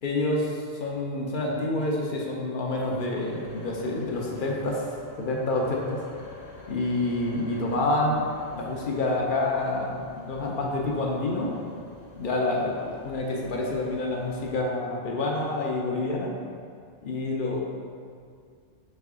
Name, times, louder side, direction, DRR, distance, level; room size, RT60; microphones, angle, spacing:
voice 1, 0.0-4.9 5.2-6.0 6.7-8.2 8.5-11.6 12.2-16.3 17.0-17.6, left 2 dB, 60° left, -1 dB, 0.6 m, -28 dB
sound 1, 2.7-14.6, left 3 dB, 85° left, 1.1 m, -46 dB
3.6 x 3.2 x 3.5 m, 2.2 s
omnidirectional pair, 1.2 m